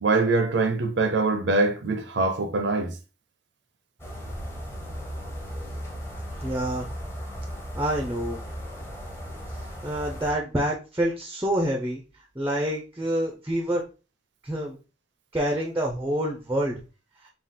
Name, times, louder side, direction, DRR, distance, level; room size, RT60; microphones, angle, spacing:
voice 1, 0.0-2.9, right 3 dB, 65° right, 0.6 m, -23 dB
sound 1, 4.0-10.3, equal, 15° left, 0.8 m, -36 dB
voice 2, 6.4-6.9 7.8-8.4 9.8-12.0 12.4-13.8 14.4-14.8 15.3-16.8, right 1 dB, 10° right, 0.5 m, -27 dB
3.7 x 2.4 x 3.6 m
head